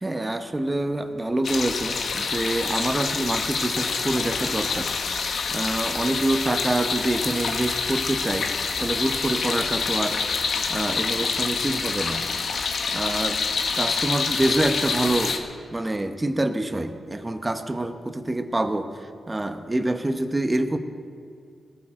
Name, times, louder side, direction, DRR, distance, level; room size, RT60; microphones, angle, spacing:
voice 1, 0.0-4.9 5.5-8.5 8.8-10.2 10.7-12.2 12.9-13.5 13.7-15.4 15.7-18.9 19.3-20.8, right 1 dB, 20° right, 8 dB, 1.0 m, -26 dB
sound 1, 1.4-15.4, left 5 dB, 70° left, 1.3 m, -27 dB
18.5 x 13.0 x 3.8 m, 2.2 s
cardioid pair, 85°, 0 cm